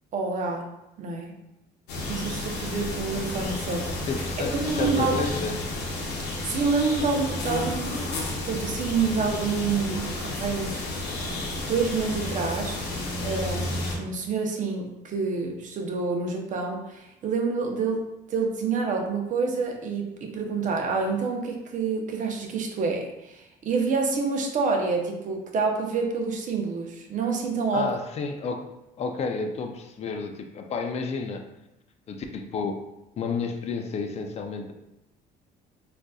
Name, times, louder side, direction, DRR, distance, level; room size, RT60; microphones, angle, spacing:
voice 1, 0.1-0.7 1.0-1.3 2.1-4.0 4.6-5.2 6.4-8.0 8.4-10.8 11.7-12.8 13.2-18.0 18.3-27.9, right 4 dB, 50° right, 2 dB, 0.7 m, -27 dB
sound 1, 1.9-14.0, left 2 dB, 85° left, 0.8 m, -31 dB
voice 2, 4.1-5.7 27.7-28.7 29.0-31.4 32.1-32.8 33.2-34.7, left 4 dB, 40° left, 5 dB, 0.4 m, -31 dB
3.9 x 2.4 x 2.3 m, 0.92 s
cardioid pair, 110°, 17 cm